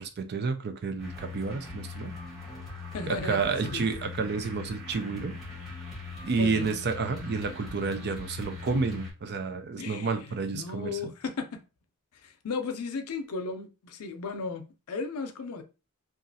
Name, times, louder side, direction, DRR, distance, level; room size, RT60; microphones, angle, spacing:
voice 1, 0.0-2.1 3.0-5.3 6.2-11.0, right 4 dB, 50° right, 0.4 m, -30 dB
sound 1, 1.0-9.1, left 3 dB, ahead, 1.4 m, -41 dB
voice 2, 2.9-3.4 3.7-3.8 6.4-6.7 9.8-10.2 10.5-11.6 12.2-15.6, left 4 dB, 85° left, 0.5 m, -35 dB
2.9 x 2.4 x 2.7 m
head